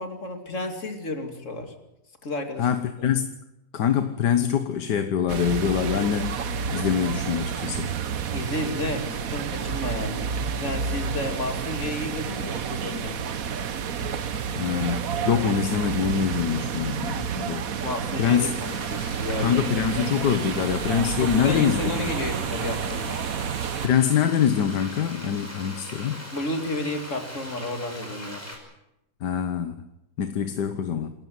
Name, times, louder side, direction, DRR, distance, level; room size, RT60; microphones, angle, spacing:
voice 1, 0.0-1.7 2.2-2.7 8.3-13.2 17.8-19.6 21.2-23.1 26.3-28.5, left 1 dB, 45° left, 5 dB, 2.9 m, -31 dB
voice 2, 2.6-3.3 3.7-6.4 6.7-7.9 14.5-17.7 18.2-18.5 19.4-22.0 23.8-26.2 29.2-29.7 30.2-31.1, left 8 dB, 80° left, 9 dB, 1.7 m, -24 dB
sound 1, 5.3-23.9, right 7 dB, 60° right, 1.4 m, -30 dB
Frying (food), 18.6-28.6, equal, 10° left, 5.5 m, -40 dB
27.5 x 14.0 x 9.4 m, 0.90 s
omnidirectional pair, 1.8 m